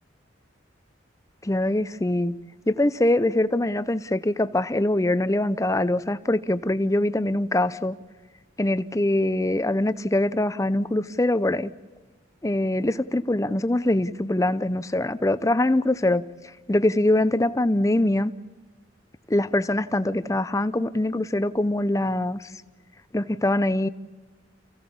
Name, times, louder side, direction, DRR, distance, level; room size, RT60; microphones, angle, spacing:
voice 1, 1.4-2.3 2.7-8.0 8.6-11.7 12.4-16.2 16.7-18.3 19.3-22.5 23.1-23.9, left 1 dB, 15° left, 0.6 m, -23 dB
29.0 x 16.0 x 7.1 m
head